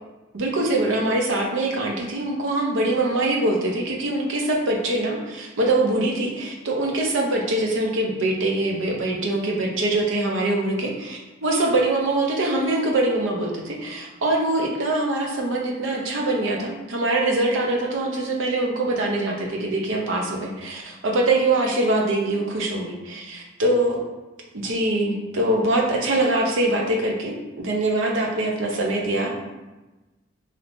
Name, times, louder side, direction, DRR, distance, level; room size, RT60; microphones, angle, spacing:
voice 1, 0.3-24.0 24.5-29.3, right 2 dB, 75° right, 0 dB, 0.6 m, -23 dB
3.4 x 2.7 x 2.5 m, 1.1 s
head